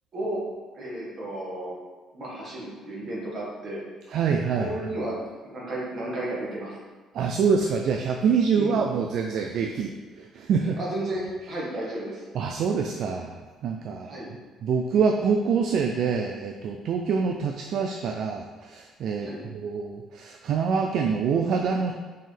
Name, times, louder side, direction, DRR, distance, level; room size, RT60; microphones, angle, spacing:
voice 1, 0.7-1.8 2.1-3.8 4.6-6.8 8.6-8.8 10.8-12.2 14.0-14.3 19.2-19.4, right 1 dB, 35° right, -5 dB, 1.7 m, -33 dB
voice 2, 4.1-4.7 7.1-9.9 10.2-10.8 12.3-13.4 13.6-14.2 14.6-19.3 19.5-21.9, right 6 dB, 50° right, 3 dB, 0.4 m, -25 dB
6.2 x 4.6 x 3.4 m, 1.4 s
cardioid pair, 170°, 0 cm